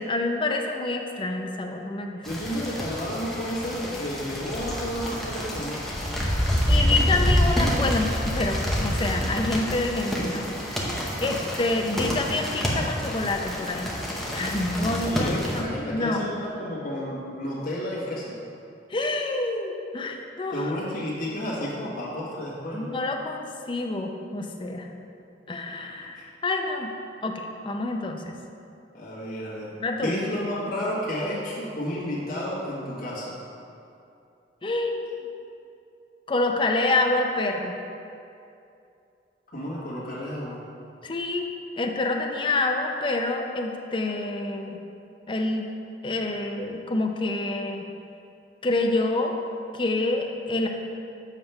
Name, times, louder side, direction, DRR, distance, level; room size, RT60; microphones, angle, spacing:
voice 1, 0.0-2.3 6.7-10.5 11.2-14.0 14.3-16.2 18.9-20.6 22.7-24.9 25.5-26.9 27.2-28.4 29.8-30.2 34.6-35.1 36.3-37.7 41.0-41.5 41.8-44.8 45.3-45.7 46.0-47.8 48.6-49.3 49.7-50.7, left 2 dB, 30° left, 2 dB, 0.5 m, -27 dB
voice 2, 2.2-5.9 14.8-18.3 20.5-23.0 26.2-26.3 28.9-33.4 39.5-40.6, equal, 55° left, -8 dB, 1.5 m, -32 dB
sound 1, 2.2-15.6, equal, ahead, 0.8 m, -27 dB
7.4 x 3.4 x 5.7 m, 2.6 s
head